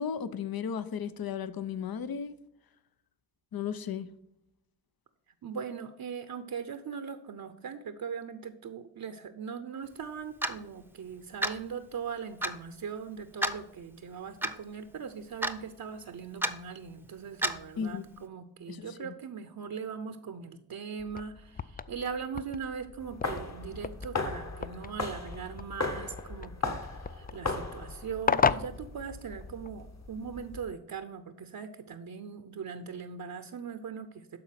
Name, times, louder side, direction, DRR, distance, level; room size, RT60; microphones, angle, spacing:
voice 1, 0.0-2.4 3.5-4.1 17.8-18.0 18.7-19.1, left 7 dB, 65° left, 0.7 m, -35 dB
voice 2, 5.4-34.4, right 6 dB, 65° right, 0.8 m, -40 dB
Clock, 10.4-10.6 11.4-11.6 12.4-12.6 13.4-13.6 14.4-14.5 15.4-15.6 16.4-16.6 17.4-17.6, right 1 dB, 5° right, 0.7 m, -30 dB
sound 1, 21.0-29.7, left 6 dB, 25° left, 0.3 m, -35 dB
sound 2, 23.0-30.7, left 3 dB, 45° left, 1.5 m, -38 dB
12.0 x 4.2 x 5.8 m
cardioid pair, 55°, 39 cm